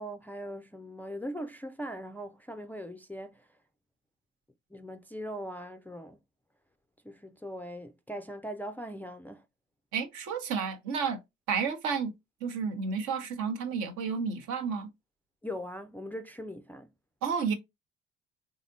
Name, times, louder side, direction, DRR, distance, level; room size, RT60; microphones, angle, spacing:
voice 1, 0.0-3.5 4.7-6.2 7.0-9.5 15.4-16.9, equal, 5° left, 0.4 m, -40 dB
voice 2, 9.9-11.2 11.5-12.1 12.4-14.9 17.2-17.5, right 6 dB, 65° right, 0.9 m, -31 dB
4.0 x 2.7 x 2.5 m
hypercardioid pair, 50°, 33 cm